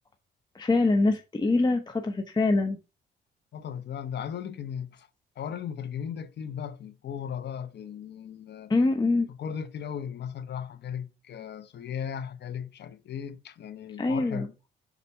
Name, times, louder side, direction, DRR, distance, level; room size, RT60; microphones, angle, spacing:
voice 1, 0.5-2.8 8.7-9.3 14.0-14.5, left 3 dB, 20° left, 0.8 m, -24 dB
voice 2, 3.5-5.1 5.4-8.7 9.3-14.5, left 8 dB, 60° left, 1.0 m, -37 dB
6.1 x 4.1 x 5.5 m
cardioid pair, 90°, 20 cm